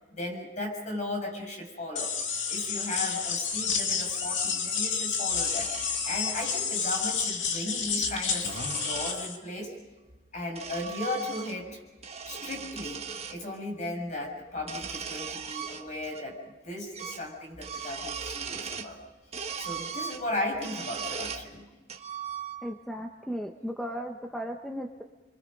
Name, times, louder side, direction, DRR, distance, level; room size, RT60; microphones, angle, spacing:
voice 1, 0.2-2.1 2.5-5.7 6.0-9.7 10.3-11.8 12.2-16.4 16.6-19.0 19.6-21.7, left 1 dB, 40° left, 2 dB, 6.4 m, -36 dB
sound 1, 2.0-9.4, left 6 dB, 80° left, 2.4 m, -30 dB
sound 2, 5.3-6.6 7.9-9.2 10.1-11.7 12.0-13.4 14.6-16.2 16.5-16.6 16.9-17.3 17.5-19.0 19.3-21.5 21.9-22.8, right 6 dB, 35° right, 1.3 m, -39 dB
voice 2, 22.6-25.0, equal, ahead, 2 dB, 1.0 m, -36 dB
29.5 x 24.0 x 5.3 m, 1.2 s
head